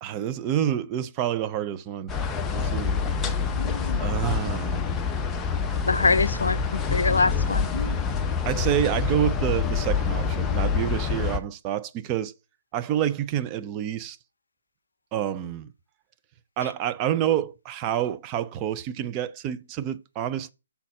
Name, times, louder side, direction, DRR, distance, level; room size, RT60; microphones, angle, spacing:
voice 1, 0.0-2.1 2.5-3.0 4.0-4.8 8.5-12.3 12.7-14.2 15.1-15.7 16.6-20.5, right 11 dB, 25° right, 0.5 m, -28 dB
sound 1, 2.1-11.4, left 5 dB, 10° left, 0.7 m, -26 dB
voice 2, 3.6-4.1 5.8-8.0, left 3 dB, 75° left, 0.5 m, -25 dB
7.0 x 4.1 x 5.7 m
figure-of-eight pair, 140°, 0 cm